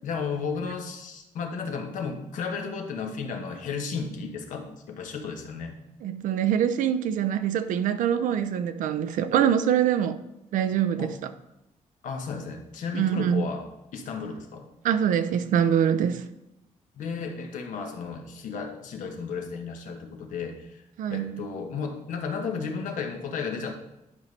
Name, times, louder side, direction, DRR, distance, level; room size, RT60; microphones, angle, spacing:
voice 1, 0.0-5.8 11.0-11.1 12.0-13.7 13.9-14.7 17.0-20.8 21.1-23.7, left 5 dB, 80° left, 1.1 m, -33 dB
voice 2, 6.0-10.2 10.5-11.3 12.9-13.5 14.8-16.3 21.0-21.4, right 9 dB, 90° right, 0.5 m, -24 dB
10.5 x 5.2 x 3.2 m
cardioid pair, 145°, 13 cm